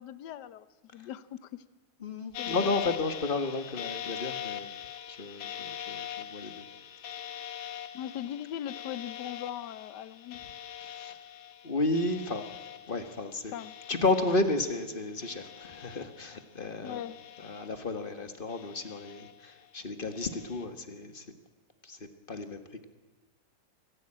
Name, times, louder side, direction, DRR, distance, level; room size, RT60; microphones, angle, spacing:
voice 1, 0.0-1.6 2.4-2.7 7.9-10.4 13.5-13.8 16.8-17.2, left 11 dB, 65° left, 15 dB, 1.4 m, -40 dB
voice 2, 2.0-4.7 5.1-6.6 10.8-11.2 11.6-12.4 12.9-13.5 13.9-17.0 17.4-21.2 21.8-22.0 22.3-22.8, left 2 dB, 30° left, 9 dB, 1.4 m, -32 dB
sound 1, 2.3-14.9 15.2-16.4 16.8-18.1 18.5-19.5 20.1-20.6, left 10 dB, 85° left, 1.9 m, -42 dB
23.0 x 15.5 x 8.7 m, 1.2 s
omnidirectional pair, 2.1 m